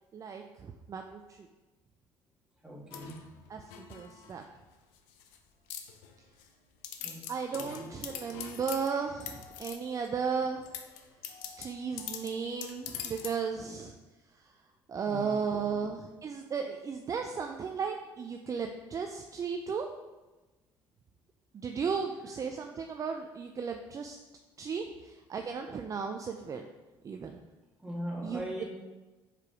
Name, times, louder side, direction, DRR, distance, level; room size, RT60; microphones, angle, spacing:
voice 1, 0.1-1.2 3.5-3.6 3.9-4.4 7.3-10.6 11.6-13.9 14.9-19.9 21.5-24.2 24.6-26.7 27.0-27.4 28.2-28.6, right 6 dB, 35° right, 4 dB, 0.5 m, -35 dB
voice 2, 2.6-3.2 7.0-7.2 7.5-7.9 15.1-15.4 27.8-28.6, equal, 10° right, -4 dB, 2.1 m, -40 dB
sound 1, 2.9-4.5 5.0-5.4 5.7-6.5 6.8-10.1 10.6-13.4, left 9 dB, 85° left, 0.6 m, -44 dB
5.0 x 4.8 x 4.8 m, 1.2 s
supercardioid pair, 80°, 10 cm